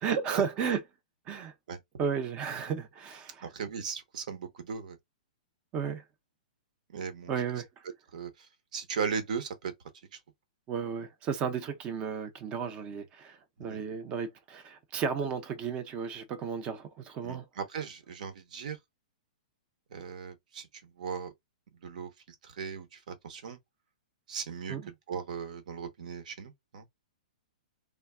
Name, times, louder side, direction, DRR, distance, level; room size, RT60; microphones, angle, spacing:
voice 1, 0.0-0.8 1.3-1.5 2.0-3.4 5.7-6.0 7.3-7.7 10.7-17.4 24.7-24.9, right 6 dB, 25° right, 0.5 m, -33 dB
voice 2, 3.4-5.0 6.9-7.3 8.1-9.7 10.1-10.2 13.6-13.8 17.2-18.8 19.9-21.3 21.8-22.1 22.4-23.6 24.3-26.8, right 6 dB, 65° right, 0.9 m, -38 dB
3.4 x 2.2 x 2.2 m
hypercardioid pair, 160°, 4 cm